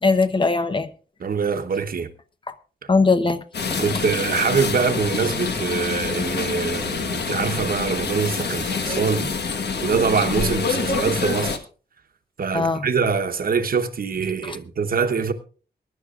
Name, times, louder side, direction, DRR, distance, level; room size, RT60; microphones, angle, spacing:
voice 1, 0.0-0.9 2.5-2.6 2.9-3.4 3.7-3.8 12.5-12.9 14.4-14.6, left 3 dB, 30° left, 0.8 m, -20 dB
voice 2, 1.2-2.1 3.8-9.5 9.8-11.6 12.4-15.3, right 5 dB, 60° right, 0.9 m, -24 dB
sound 1, 3.5-11.6, left 5 dB, 80° left, 1.4 m, -26 dB
23.0 x 11.0 x 2.4 m
wide cardioid pair, 170°, 17 cm